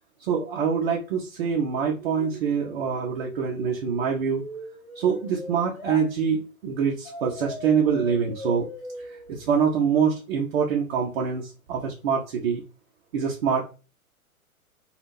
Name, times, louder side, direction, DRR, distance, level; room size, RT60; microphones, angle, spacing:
voice 1, 0.2-4.4 4.9-8.7 9.3-12.6 13.1-13.6, right 6 dB, 45° right, -1 dB, 0.7 m, -25 dB
sound 1, 3.2-6.0 7.0-10.0, left 1 dB, 15° left, 0.4 m, -39 dB
3.4 x 2.4 x 2.5 m, 0.33 s
figure-of-eight pair, 115°, 43 cm